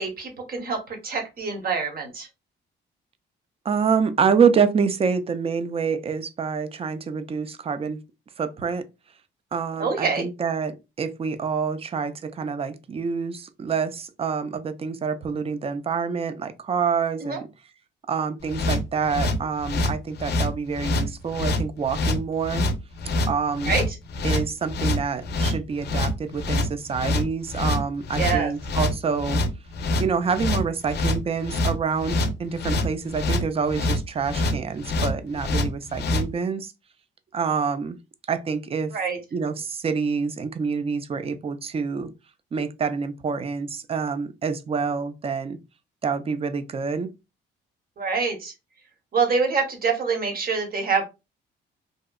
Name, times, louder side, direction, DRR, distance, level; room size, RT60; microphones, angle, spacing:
voice 1, 0.0-2.3 9.8-10.3 17.2-17.4 23.7-23.8 28.2-28.5 38.9-39.2 48.0-48.5 49.1-51.0, right 5 dB, 50° right, 0.9 m, -25 dB
voice 2, 3.6-8.0 8.4-8.8 9.5-17.5 18.1-22.7 23.3-23.8 24.2-29.4 30.0-36.7 37.3-38.0 38.3-38.9 39.3-42.1 42.5-45.6 46.0-47.1, right 6 dB, 30° right, 0.4 m, -27 dB
sound 1, 18.5-36.3, left 2 dB, 55° left, 0.4 m, -25 dB
2.7 x 2.1 x 2.3 m
cardioid pair, 90°, 20 cm